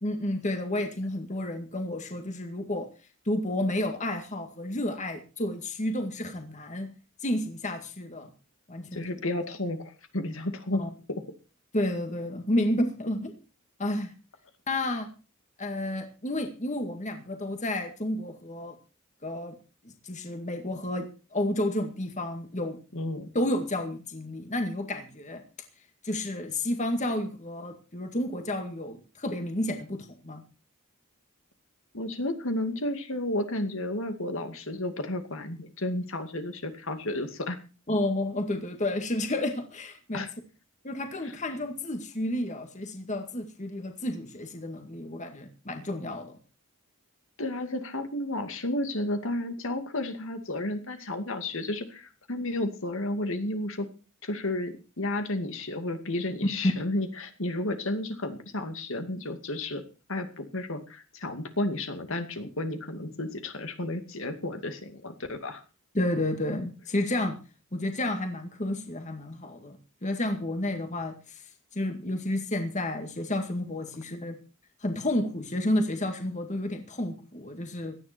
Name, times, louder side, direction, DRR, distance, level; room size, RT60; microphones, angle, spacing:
voice 1, 0.0-2.9 3.3-6.9 7.2-8.3 8.7-9.0 10.8-10.9 11.7-13.3 13.8-14.1 14.7-15.1 15.6-18.8 19.2-19.6 19.8-22.8 23.3-25.4 26.0-30.4 37.9-40.3 40.8-46.3 65.9-67.4 67.7-71.4 71.7-74.4 74.8-77.9, left 1 dB, 35° left, 5 dB, 2.0 m, -31 dB
voice 2, 8.9-10.8 11.1-11.2 22.9-23.3 31.9-37.6 40.1-40.3 41.2-41.3 47.4-53.9 54.2-59.8 60.1-65.6, left 1 dB, 65° left, 7 dB, 2.4 m, -32 dB
17.5 x 12.5 x 4.4 m, 0.34 s
head